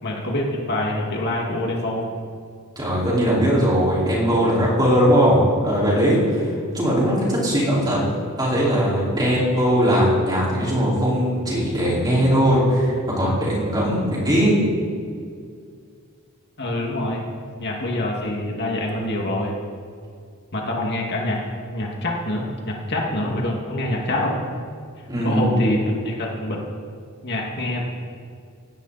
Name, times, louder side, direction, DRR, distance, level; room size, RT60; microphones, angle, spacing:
voice 1, 0.0-2.1 16.6-17.2 17.6-19.6 20.5-21.4 21.7-24.4 25.2-26.6 27.2-27.9, left 1 dB, 50° left, -1 dB, 2.4 m, -25 dB
voice 2, 2.7-8.0 8.4-14.6 25.1-25.5, equal, 20° right, -6 dB, 5.0 m, -19 dB
17.5 x 17.0 x 4.3 m, 2.2 s
head